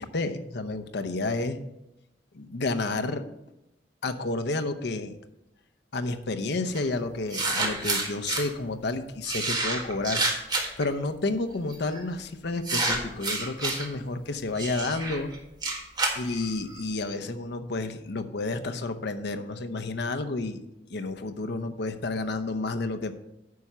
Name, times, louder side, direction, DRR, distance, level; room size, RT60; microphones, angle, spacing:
voice 1, 0.0-1.6 2.3-3.2 4.0-5.2 5.9-10.2 10.8-15.3 16.1-20.6 20.9-23.2, left 2 dB, 65° left, 9 dB, 0.8 m, -30 dB
sound 1, 6.7-6.8 7.3-8.4 9.2-10.9 11.7-12.0 12.6-13.9 14.6-16.8, right 2 dB, 25° right, 1.5 m, -29 dB
9.5 x 5.9 x 5.5 m, 0.90 s
head